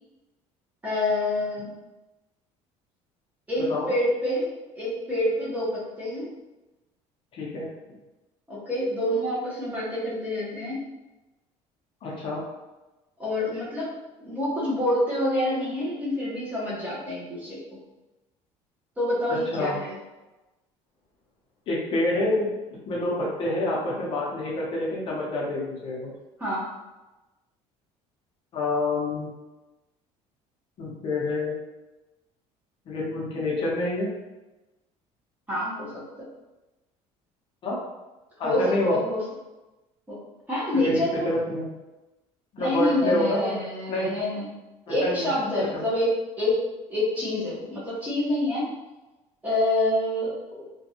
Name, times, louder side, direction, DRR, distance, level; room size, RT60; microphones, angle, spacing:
voice 1, 0.8-1.7 3.5-4.5 4.7-6.3 8.5-10.9 13.2-13.9 14.2-17.8 19.0-19.9 26.4-26.6 35.5-36.0 38.4-39.2 40.1-40.2 40.5-41.3 42.6-44.5 44.9-46.6 46.9-48.7 49.4-50.7, left 1 dB, 10° right, -8 dB, 0.9 m, -27 dB
voice 2, 7.3-7.7 12.0-12.4 19.3-19.7 21.7-22.6 22.9-26.1 28.5-29.3 30.8-31.5 32.9-34.1 37.6-37.8 38.4-39.0 40.8-41.7 42.5-43.5 43.9-44.1 44.9-45.3 45.7-45.8, left 2 dB, 45° left, -4 dB, 0.6 m, -27 dB
2.5 x 2.2 x 2.7 m, 1.1 s
cardioid pair, 150°, 13 cm